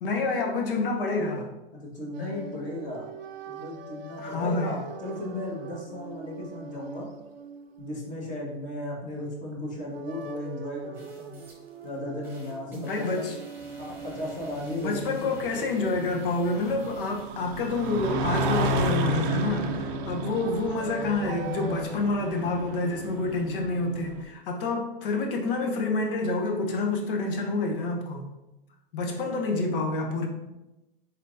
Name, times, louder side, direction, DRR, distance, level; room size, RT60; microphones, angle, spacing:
voice 1, 0.0-1.5 4.2-4.8 12.7-13.4 14.8-28.2 28.9-30.3, left 3 dB, 65° left, 2 dB, 1.0 m, -28 dB
voice 2, 1.7-3.1 3.5-7.1 7.8-11.4 11.8-13.3 13.8-15.3 29.2-29.3, left 1 dB, 25° left, -3 dB, 1.4 m, -35 dB
sound 1, 2.1-9.2 9.7-17.5 19.2-21.9, right 5 dB, 80° right, 0.6 m, -43 dB
sound 2, 10.9-12.0 12.2-18.2, right 1 dB, 5° right, 1.2 m, -54 dB
sound 3, 13.6-24.2, right 1 dB, 35° right, 0.5 m, -32 dB
4.3 x 3.9 x 2.6 m, 0.99 s
hypercardioid pair, 120°, 29 cm